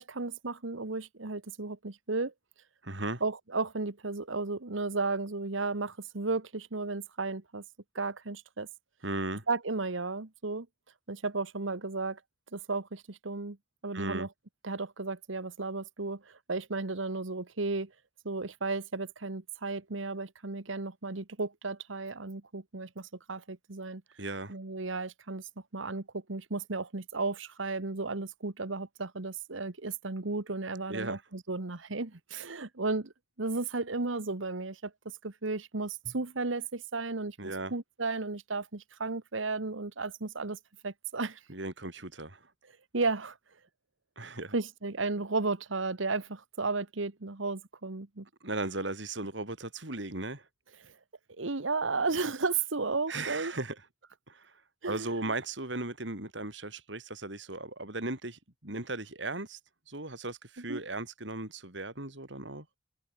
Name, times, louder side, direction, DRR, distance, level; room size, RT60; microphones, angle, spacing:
voice 1, 0.0-2.3 3.2-7.6 7.9-8.7 9.5-10.7 11.1-12.2 12.5-13.6 13.8-14.3 14.6-17.9 18.2-24.0 24.5-33.1 33.4-34.9 35.2-37.4 37.7-40.6 40.8-41.4 42.9-43.4 44.5-48.3 50.8-50.9 51.4-53.5 54.8-55.1 60.7-60.8, right 3 dB, 85° right, 1.5 m, -34 dB
voice 2, 2.8-3.2 9.0-9.5 13.9-14.3 24.2-24.5 30.9-31.2 37.4-37.7 41.5-42.5 44.2-44.6 48.4-50.5 53.1-53.8 54.3-59.6 59.9-62.7, right 2 dB, 70° right, 4.5 m, -37 dB
head